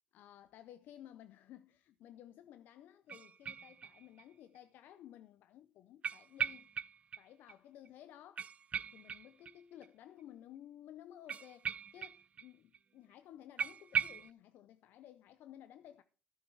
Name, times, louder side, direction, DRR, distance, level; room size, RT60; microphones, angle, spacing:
voice 1, 0.1-6.7 7.2-8.5 8.9-16.0, left 11 dB, 75° left, 0.6 m, -55 dB
sound 1, 3.1-4.2 4.6-4.7 6.0-7.2 7.5-7.6 7.9-8.0 8.4-9.9 11.3-12.5 12.7-12.8 13.1-13.2 13.6-14.3, right 7 dB, 45° right, 0.4 m, -39 dB
13.0 x 7.4 x 4.7 m
supercardioid pair, 80°, 3 cm